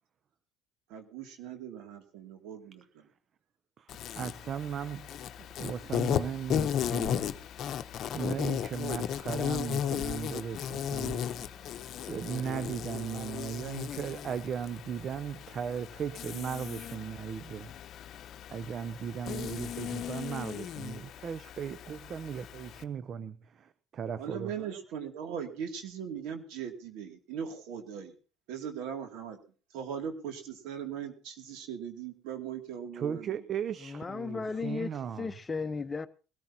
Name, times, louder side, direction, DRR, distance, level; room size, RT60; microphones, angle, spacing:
voice 1, 0.9-3.1 24.1-28.1 28.5-29.4 29.7-33.4, right 8 dB, 80° right, 2.5 m, -39 dB
voice 2, 3.8-5.1 5.4-7.3 8.1-11.6 12.1-17.7 18.5-24.5 32.9-35.2, right 7 dB, 50° right, 0.6 m, -37 dB
Insect, 3.9-22.8, left 9 dB, 60° left, 0.8 m, -36 dB
voice 3, 33.8-34.9 35.2-36.1, left 4 dB, 25° left, 0.9 m, -35 dB
20.5 x 13.5 x 2.9 m
supercardioid pair, 85°, 0 cm